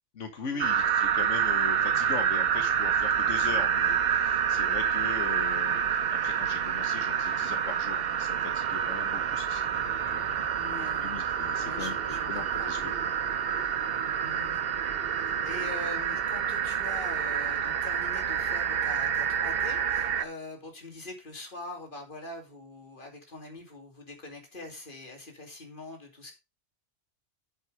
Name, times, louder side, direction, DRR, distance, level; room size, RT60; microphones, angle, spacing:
voice 1, 0.2-10.5 11.0-11.9 12.3-13.1, left 5 dB, 85° left, 6 dB, 1.7 m, -40 dB
sound 1, 0.6-20.2, right 8 dB, 60° right, 0.9 m, -28 dB
sound 2, 7.4-16.0, right 2 dB, 5° left, 5.0 m, -49 dB
voice 2, 10.3-11.1 11.5-13.0 14.2-14.6 15.3-26.3, left 2 dB, 45° left, 3 dB, 2.9 m, -43 dB
9.0 x 6.6 x 5.1 m, 0.27 s
omnidirectional pair, 1.2 m